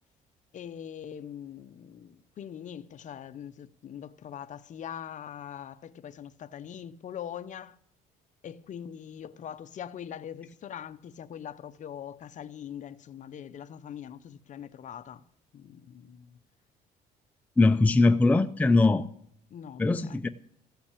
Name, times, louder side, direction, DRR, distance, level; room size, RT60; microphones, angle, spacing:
voice 1, 0.5-7.8 8.4-15.2 15.5-16.4 19.5-20.2, left 9 dB, 45° left, 0.7 m, -42 dB
voice 2, 17.6-19.1 19.8-20.3, left 3 dB, 10° left, 0.5 m, -21 dB
14.5 x 5.9 x 8.3 m
cardioid pair, 110°, 17 cm